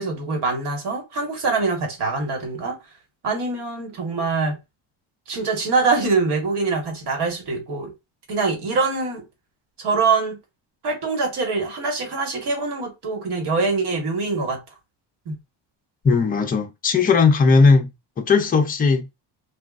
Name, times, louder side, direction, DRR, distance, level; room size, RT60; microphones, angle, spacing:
voice 1, 0.0-2.8 3.2-4.6 5.3-7.9 8.3-9.2 9.8-10.4 10.8-14.6 15.3-15.4, right 4 dB, 60° right, 1.4 m, -24 dB
voice 2, 16.0-17.9 18.2-19.1, left 4 dB, 20° left, 0.5 m, -17 dB
3.6 x 2.4 x 2.4 m
cardioid pair, 150°, 46 cm